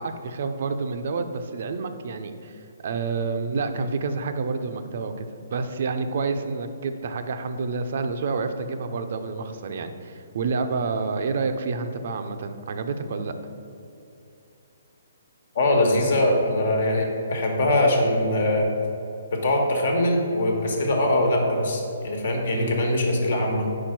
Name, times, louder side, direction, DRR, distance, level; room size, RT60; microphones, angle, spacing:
voice 1, 0.0-13.3 22.5-22.8, right 4 dB, 55° right, 8 dB, 0.5 m, -29 dB
voice 2, 15.5-18.7 19.3-23.7, left 1 dB, 65° left, 1 dB, 1.3 m, -22 dB
4.7 x 4.5 x 5.9 m, 2.8 s
hypercardioid pair, 150°, 0 cm